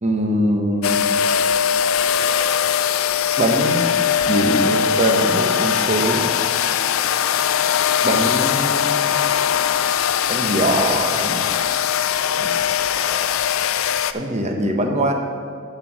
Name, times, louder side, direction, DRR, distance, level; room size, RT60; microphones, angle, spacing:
voice 1, 0.0-1.0 3.4-4.0 4.3-6.3 8.0-9.0 10.3-11.5 12.4-12.5 14.1-15.1, right 1 dB, 35° right, 3 dB, 0.9 m, -22 dB
sound 1, 0.8-14.1, left 8 dB, 85° left, 0.4 m, -20 dB
10.5 x 4.5 x 6.1 m, 2.3 s
head